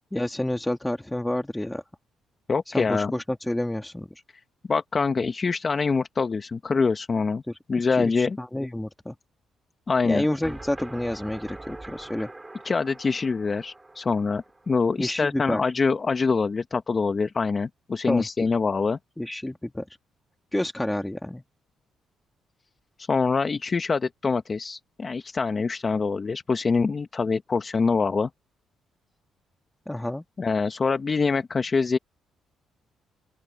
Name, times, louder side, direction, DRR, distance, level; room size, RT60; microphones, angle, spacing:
voice 1, 0.1-1.8 2.7-4.1 7.5-7.6 7.9-9.2 10.1-12.3 15.0-15.6 18.1-18.5 19.2-19.9 20.5-21.4 29.9-30.2, left 1 dB, 10° left, 1.7 m, -29 dB
voice 2, 2.5-3.1 4.7-7.4 7.7-8.4 9.9-10.2 12.6-19.0 23.0-28.3 30.4-32.0, left 4 dB, 35° left, 1.2 m, -25 dB
sound 1, 10.4-15.4, right 2 dB, 15° right, 4.9 m, -44 dB
open air
cardioid pair, 90°, 0 cm